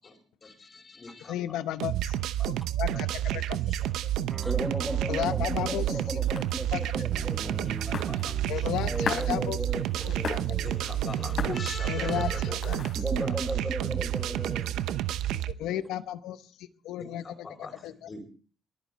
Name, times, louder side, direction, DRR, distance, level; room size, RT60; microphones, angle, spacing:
voice 1, 0.0-1.6 2.4-2.5 2.9-4.1 6.7-6.8 7.1-8.6 10.1-10.3 10.6-12.8 13.1-14.7 17.0-18.2, left 3 dB, 40° left, 4.7 m, -43 dB
voice 2, 1.3-2.2 2.8-3.1 3.5-3.6 5.1-5.8 6.7-6.8 8.5-9.6 10.0-10.4 11.8-12.3 12.7-12.8 15.6-16.4 16.8-17.2 17.8-17.9, left 12 dB, 90° left, 0.8 m, -32 dB
sound 1, 1.8-15.5, right 12 dB, 90° right, 0.7 m, -30 dB
sound 2, 4.3-11.8, right 1 dB, 20° right, 2.0 m, -45 dB
voice 3, 4.4-7.5 8.9-9.8 10.1-10.9 12.9-14.9 15.3-15.8, equal, 5° right, 1.6 m, -36 dB
sound 3, 5.1-13.2, left 5 dB, 60° left, 3.9 m, -40 dB
22.5 x 9.1 x 4.2 m
cardioid pair, 90°, 0 cm